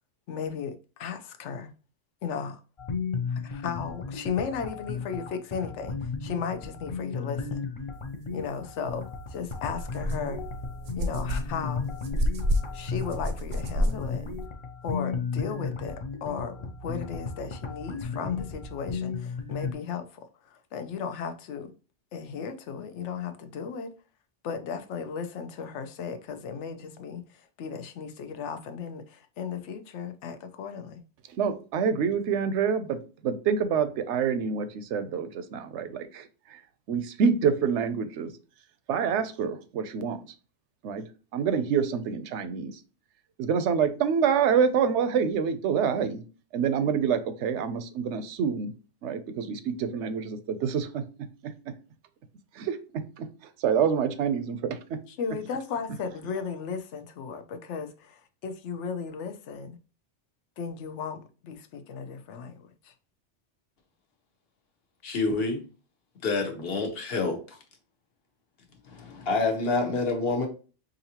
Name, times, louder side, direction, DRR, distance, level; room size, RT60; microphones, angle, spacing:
voice 1, 0.3-1.7 2.2-2.6 3.3-7.6 8.3-10.4 11.0-11.9 12.7-14.3 14.8-21.7 22.1-23.9 24.4-31.0 55.1-59.8 60.6-62.9, left 6 dB, 75° left, 0.9 m, -36 dB
sound 1, 2.8-19.7, left 5 dB, 40° left, 0.5 m, -35 dB
sound 2, 8.9-9.0 9.4-14.5, equal, 50° right, 0.6 m, -30 dB
voice 2, 31.4-36.6 36.9-38.3 38.9-40.2 40.8-41.0 41.3-42.7 43.4-46.2 46.5-48.7 49.0-51.0 51.4-51.5 52.5-52.8 53.2-53.3 53.6-55.0, right 7 dB, 75° right, 0.9 m, -27 dB
voice 3, 65.0-65.6 66.2-67.4 68.9-70.5, left 3 dB, 55° left, 1.2 m, -27 dB
5.0 x 2.6 x 2.8 m
omnidirectional pair, 1.2 m